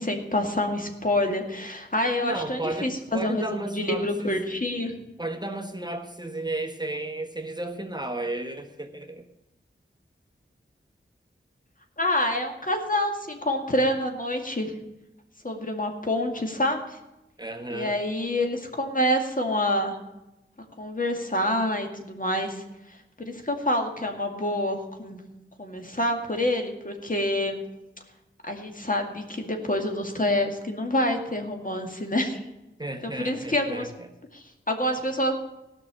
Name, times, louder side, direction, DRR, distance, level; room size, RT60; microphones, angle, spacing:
voice 1, 0.0-5.0 12.0-14.7 15.4-17.0 17.7-20.0 20.8-22.6 23.2-25.2 25.6-27.6 28.4-32.4 33.0-33.9 34.3-35.3, left 1 dB, 40° left, 3 dB, 2.2 m, -27 dB
voice 2, 2.2-4.4 5.2-9.3 17.4-18.0 32.8-34.1, right 2 dB, 20° right, 4 dB, 1.2 m, -33 dB
15.5 x 6.0 x 7.5 m, 0.97 s
wide cardioid pair, 40°, 21 cm